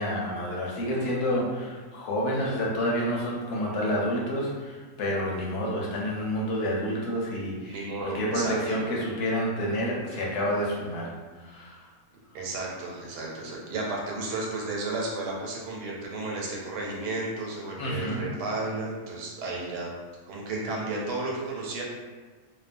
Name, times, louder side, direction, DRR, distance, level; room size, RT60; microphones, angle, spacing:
voice 1, 0.0-11.8 17.8-18.2, equal, 75° left, -3 dB, 1.1 m, -29 dB
voice 2, 7.7-8.8 12.3-19.9 20.3-21.8, right 2 dB, 80° right, -3 dB, 1.2 m, -33 dB
2.7 x 2.3 x 2.5 m, 1.3 s
omnidirectional pair, 1.8 m